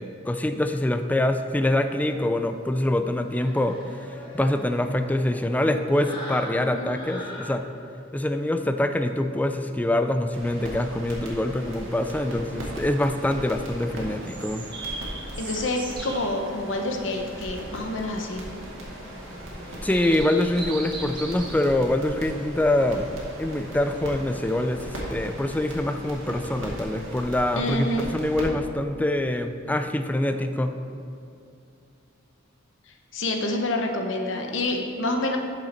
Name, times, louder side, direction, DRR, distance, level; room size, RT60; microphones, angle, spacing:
voice 1, 0.0-3.8 4.1-7.6 8.1-14.7 19.8-23.1 23.4-30.7, left 1 dB, 10° left, 7 dB, 0.3 m, -25 dB
sound 1, 1.9-7.5, left 1 dB, 25° left, 1.9 m, -42 dB
voice 2, 6.5-6.9 15.4-18.4 27.6-28.1 33.1-35.4, left 1 dB, 70° left, 3 dB, 0.9 m, -28 dB
sound 2, 10.3-28.4, equal, 85° right, 1.8 m, -38 dB
sound 3, 11.5-27.8, right 2 dB, 25° right, 1.2 m, -43 dB
8.7 x 6.5 x 4.3 m, 2.6 s
head